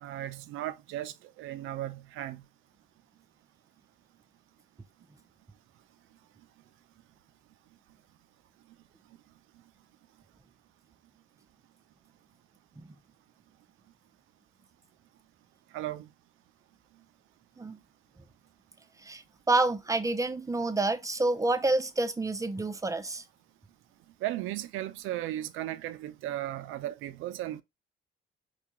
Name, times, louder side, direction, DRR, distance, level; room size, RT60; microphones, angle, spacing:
voice 1, 0.0-2.4 15.7-16.1 24.2-27.6, right 14 dB, 85° right, 0.4 m, -36 dB
voice 2, 19.0-23.2, right 2 dB, 15° right, 0.4 m, -28 dB
4.6 x 2.2 x 2.9 m
cardioid pair, 90°, 20 cm